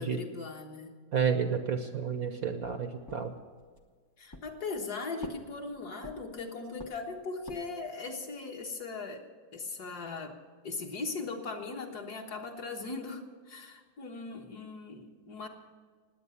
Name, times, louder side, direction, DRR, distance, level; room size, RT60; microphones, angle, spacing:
voice 1, 0.0-1.0 4.2-9.2 9.5-10.4 10.6-15.5, left 3 dB, 55° left, 2 dB, 1.9 m, -39 dB
voice 2, 1.1-3.3, right 6 dB, 60° right, 7 dB, 1.1 m, -30 dB
sound 1, 3.1-3.9 4.3-4.9 5.2-6.4 6.8-7.9, left 1 dB, 25° left, 0.5 m, -46 dB
19.5 x 8.7 x 7.1 m, 1.5 s
omnidirectional pair, 2.2 m